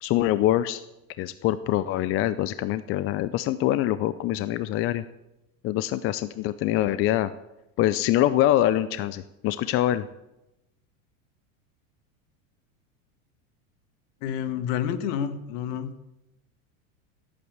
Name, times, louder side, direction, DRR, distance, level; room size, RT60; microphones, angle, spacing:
voice 1, 0.0-0.8 1.2-5.0 5.6-7.3 7.8-10.1, left 13 dB, 30° left, 15 dB, 0.5 m, -24 dB
voice 2, 14.2-15.9, left 9 dB, 55° left, 11 dB, 1.7 m, -29 dB
15.5 x 8.8 x 8.0 m, 0.93 s
supercardioid pair, 120°, 42 cm